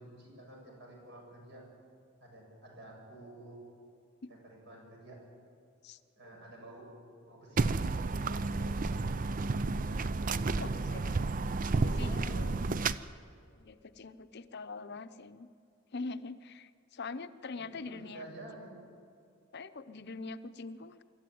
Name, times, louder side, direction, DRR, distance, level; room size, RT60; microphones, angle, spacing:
voice 1, 0.0-1.6 2.2-3.6 4.3-5.2 6.2-6.9 7.2-8.7 10.2-11.1 11.7-12.5 17.6-18.9, right 1 dB, 60° right, -1 dB, 7.5 m, -50 dB
sound 1, 7.6-12.9, right 3 dB, 40° right, 0.5 m, -31 dB
voice 2, 10.6-11.0 11.8-12.2 13.6-15.5 15.9-18.3 19.5-21.0, left 3 dB, 55° left, 11 dB, 0.7 m, -43 dB
25.5 x 13.5 x 9.3 m, 2.4 s
head